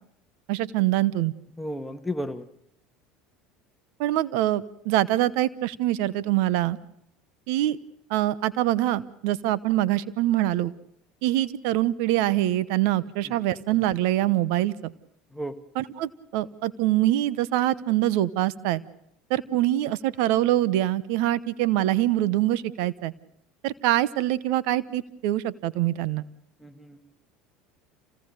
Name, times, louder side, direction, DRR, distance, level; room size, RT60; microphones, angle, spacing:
voice 1, 0.5-1.3 4.0-6.8 7.5-7.8 8.1-10.7 11.2-14.9 15.7-18.8 19.3-23.1 23.6-26.2, right 14 dB, 70° right, 18 dB, 0.9 m, -24 dB
voice 2, 1.6-2.5 13.3-13.4 15.3-15.6 26.6-27.1, equal, 5° left, 7 dB, 1.8 m, -33 dB
27.5 x 17.5 x 6.6 m, 0.75 s
supercardioid pair, 90°, 0 cm